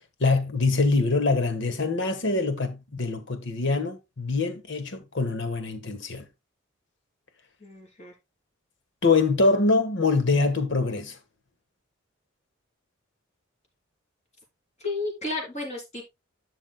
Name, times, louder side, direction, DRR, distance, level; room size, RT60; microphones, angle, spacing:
voice 1, 0.2-6.3 9.0-11.2, left 3 dB, 60° left, 1.4 m, -24 dB
voice 2, 7.6-8.1 14.8-16.0, left 2 dB, 35° left, 3.2 m, -32 dB
11.5 x 6.3 x 2.3 m
head